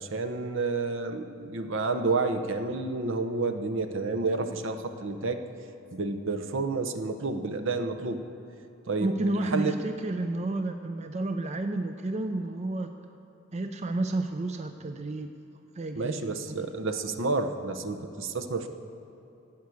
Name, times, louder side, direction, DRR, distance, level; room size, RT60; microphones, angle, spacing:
voice 1, 0.0-5.4 5.9-8.2 8.9-9.1 9.5-9.8 16.0-18.7, right 3 dB, 65° right, 7 dB, 0.9 m, -30 dB
voice 2, 9.0-12.9 13.5-15.3 15.8-16.2 16.5-16.6, right 2 dB, 35° right, 7 dB, 0.5 m, -31 dB
13.0 x 8.4 x 7.8 m, 2.9 s
head